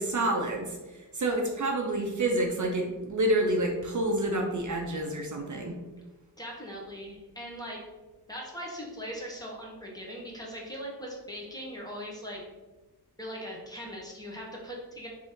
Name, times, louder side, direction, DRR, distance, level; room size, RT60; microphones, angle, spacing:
voice 1, 0.0-5.8, right 1 dB, 50° right, 1 dB, 0.5 m, -28 dB
voice 2, 6.4-7.8 8.3-12.4 13.2-15.1, equal, 10° left, -3 dB, 0.9 m, -40 dB
3.8 x 2.6 x 3.6 m, 1.2 s
wide cardioid pair, 100°, 39 cm